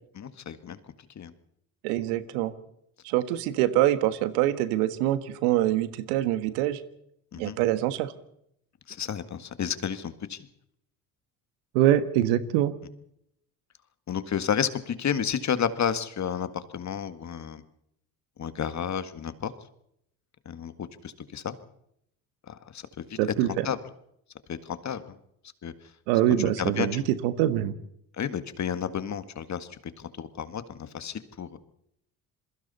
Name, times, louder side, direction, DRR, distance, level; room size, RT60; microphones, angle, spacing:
voice 1, 0.2-0.8 1.2-1.3 7.3-7.6 8.9-10.4 14.1-16.5 16.7-17.6 18.4-19.5 20.5-21.6 22.5-23.2 23.6-23.8 24.5-25.0 25.6-25.7 26.6-27.0 28.2-31.6, left 8 dB, 40° left, 11 dB, 1.9 m, -31 dB
voice 2, 1.8-2.5 3.0-6.8 7.4-8.1 11.7-12.7 23.2-23.7 26.1-27.7, right 13 dB, 80° right, 12 dB, 1.6 m, -24 dB
28.0 x 22.0 x 4.3 m, 0.75 s
hypercardioid pair, 70°, 44 cm